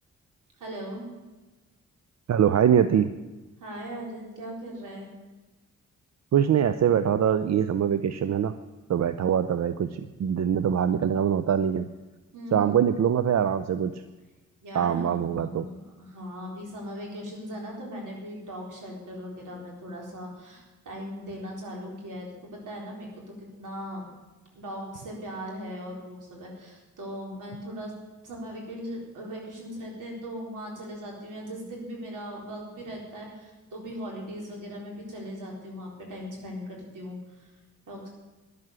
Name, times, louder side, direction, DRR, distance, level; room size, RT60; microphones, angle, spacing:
voice 1, 0.6-1.0 3.6-5.1 12.3-12.8 14.6-22.3 22.5-24.0 24.5-27.9 28.2-37.5 37.9-38.1, equal, 80° right, -1 dB, 4.1 m, -39 dB
voice 2, 2.3-3.1 6.3-8.6 8.9-11.9 12.5-14.0 14.7-15.7, right 8 dB, 55° right, 12 dB, 0.6 m, -23 dB
11.0 x 7.5 x 9.6 m, 1.2 s
cardioid pair, 55°, 31 cm